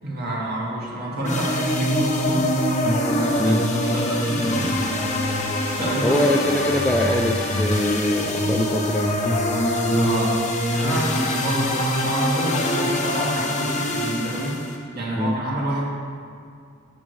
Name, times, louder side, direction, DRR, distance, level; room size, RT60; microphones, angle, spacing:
voice 1, 0.0-2.5 3.1-4.8 5.8-6.2 9.9-10.4 10.7-14.6 14.9-15.8, right 1 dB, 50° right, -5 dB, 2.0 m, -28 dB
sound 1, 1.2-14.8, left 1 dB, 35° left, 0.9 m, -24 dB
voice 2, 6.0-9.2 15.2-15.4, left 1 dB, 5° left, 0 dB, 0.4 m, -23 dB
11.5 x 6.7 x 3.2 m, 2.3 s
head